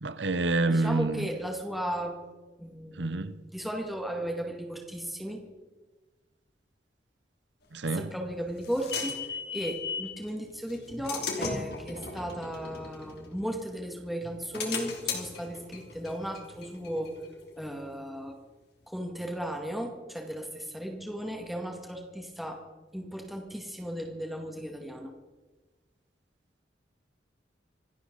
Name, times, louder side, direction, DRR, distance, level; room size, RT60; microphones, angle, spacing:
voice 1, 0.0-1.3 2.9-3.4 7.7-8.1, right 2 dB, 75° right, 0.9 m, -28 dB
voice 2, 0.7-2.2 2.6-5.4 7.9-9.2 9.5-17.1 17.6-18.4 18.9-22.6 22.9-25.1, equal, ahead, 2.0 m, -35 dB
sound 1, 7.9-10.1 10.7-13.8 14.2-17.6, left 5 dB, 60° left, 2.9 m, -37 dB
26.5 x 11.5 x 4.0 m
head